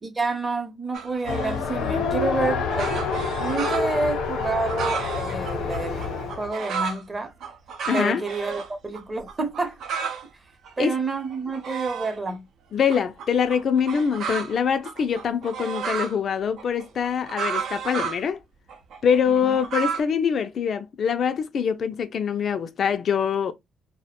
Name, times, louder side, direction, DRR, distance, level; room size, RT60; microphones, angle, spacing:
voice 1, 0.0-2.9 3.4-7.3 7.9-9.8 10.8-12.4 19.4-19.6, right 3 dB, 25° right, 0.7 m, -29 dB
sound 1, 0.9-1.7 2.4-7.0 7.4-8.7 8.9-9.0 9.3-10.2 10.6-12.3 12.9-16.2 16.6-18.2 18.7-20.0, right 6 dB, 75° right, 0.5 m, -32 dB
Race car auto racing, 1.3-6.5, left 4 dB, 90° left, 0.7 m, -27 dB
voice 2, 7.9-8.2 10.8-11.0 12.7-18.4 19.0-23.5, left 7 dB, 55° left, 0.3 m, -24 dB
2.4 x 2.1 x 2.8 m
cardioid pair, 90°, 0 cm